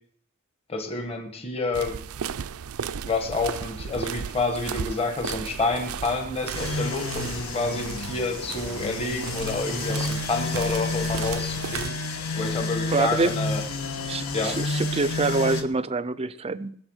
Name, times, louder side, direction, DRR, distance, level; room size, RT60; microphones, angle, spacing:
voice 1, 0.7-2.0 3.1-13.6 14.3-14.6, left 3 dB, 25° left, 4 dB, 1.4 m, -29 dB
sound 1, 1.7-11.9, right 7 dB, 80° right, 0.5 m, -35 dB
sound 2, 6.5-15.6, left 3 dB, 75° left, 1.5 m, -30 dB
voice 2, 12.9-13.4 14.1-16.8, right 3 dB, 25° right, 16 dB, 0.5 m, -26 dB
21.0 x 7.0 x 6.4 m, 0.63 s
head